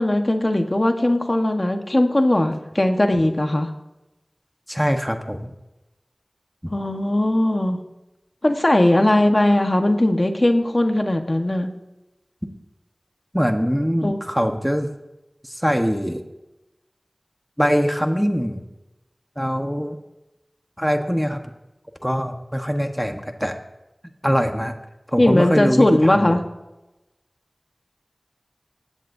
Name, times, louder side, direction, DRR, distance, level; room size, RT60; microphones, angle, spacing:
voice 1, 0.0-3.7 6.7-7.8 8.4-11.7 14.0-14.2 25.2-26.4, left 1 dB, 40° left, 5 dB, 1.3 m, -19 dB
voice 2, 4.7-5.5 6.6-6.7 13.3-14.9 15.4-16.2 17.6-18.6 19.4-20.0 20.8-21.4 22.0-23.5 24.2-24.7 25.1-26.4, equal, ahead, 5 dB, 1.2 m, -22 dB
18.5 x 15.0 x 2.7 m, 0.99 s
wide cardioid pair, 55°, 0 cm